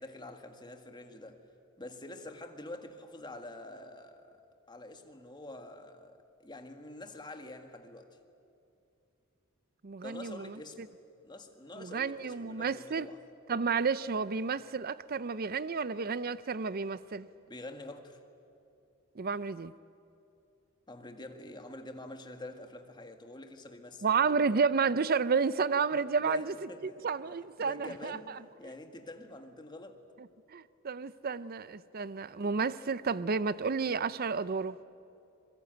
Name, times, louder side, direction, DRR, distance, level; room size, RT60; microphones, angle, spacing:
voice 1, 0.0-1.4 1.8-4.4 4.7-8.2 10.0-10.9 11.2-13.2 17.5-18.2 20.9-24.0 24.4-24.6 26.2-27.1 27.6-30.0, left 1 dB, 20° left, 1.8 m, -46 dB
voice 2, 9.8-10.9 11.7-13.1 13.5-17.3 19.2-19.7 24.0-28.4 30.2-34.8, right 5 dB, 45° right, 0.6 m, -31 dB
26.0 x 22.5 x 9.2 m
head